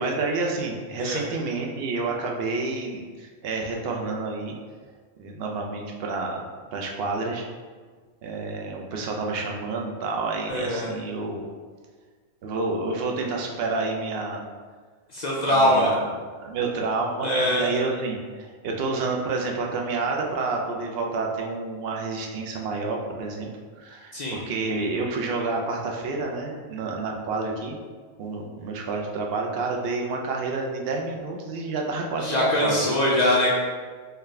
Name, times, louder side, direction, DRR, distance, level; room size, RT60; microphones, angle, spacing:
voice 1, 0.0-4.6 5.2-6.4 6.7-7.4 8.2-11.5 12.4-14.4 15.5-16.0 16.4-23.5 23.8-27.8 28.2-33.0, right 3 dB, 60° right, 1 dB, 0.7 m, -29 dB
voice 2, 10.5-10.9 15.1-15.9 17.2-17.7 24.1-24.4 32.2-33.5, left 1 dB, 65° left, -5 dB, 0.4 m, -22 dB
3.9 x 2.7 x 3.2 m, 1.5 s
omnidirectional pair, 1.4 m